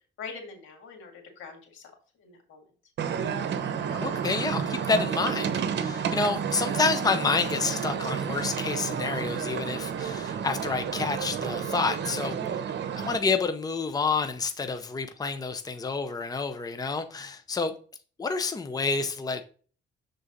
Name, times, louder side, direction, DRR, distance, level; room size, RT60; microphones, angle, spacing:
voice 1, 0.2-2.7 12.4-12.6, left 5 dB, 85° left, 1.8 m, -44 dB
sound 1, 3.0-13.2, right 7 dB, 60° right, 0.9 m, -31 dB
voice 2, 4.0-12.4 13.0-17.7 18.2-19.4, left 4 dB, 20° left, 0.7 m, -29 dB
7.1 x 3.9 x 3.9 m
cardioid pair, 90°, 20 cm